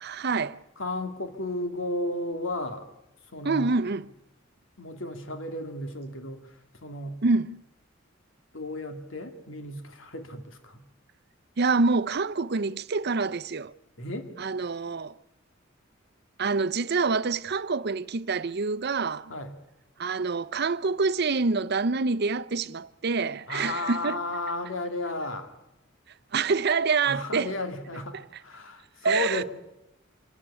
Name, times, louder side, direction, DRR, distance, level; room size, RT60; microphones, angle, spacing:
voice 1, 0.0-0.6 3.4-4.1 7.2-7.6 11.6-13.7 14.4-15.1 16.4-19.3 20.0-24.2 26.3-27.5 29.0-29.4, right 4 dB, 55° right, 0.7 m, -26 dB
voice 2, 0.8-2.9 3.3-3.8 4.8-7.2 8.5-10.8 14.0-14.3 19.3-19.6 23.5-25.5 27.0-29.4, left 2 dB, 80° left, 2.6 m, -34 dB
26.0 x 12.5 x 9.8 m
head